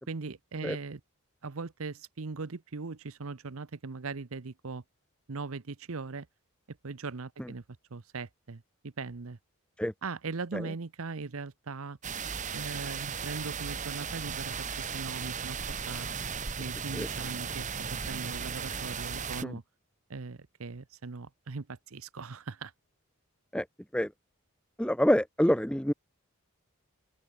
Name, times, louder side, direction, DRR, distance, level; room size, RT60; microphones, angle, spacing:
voice 1, 0.1-1.0 1.4-4.8 5.3-6.3 6.7-7.6 7.9-9.4 10.0-12.0 12.5-15.6 15.9-16.1 16.6-19.6 20.1-22.7, right 4 dB, 70° right, 0.8 m, -39 dB
sound 1, 12.0-19.4, right 6 dB, 35° right, 1.3 m, -36 dB
voice 2, 24.8-25.9, equal, 5° left, 0.7 m, -27 dB
open air
head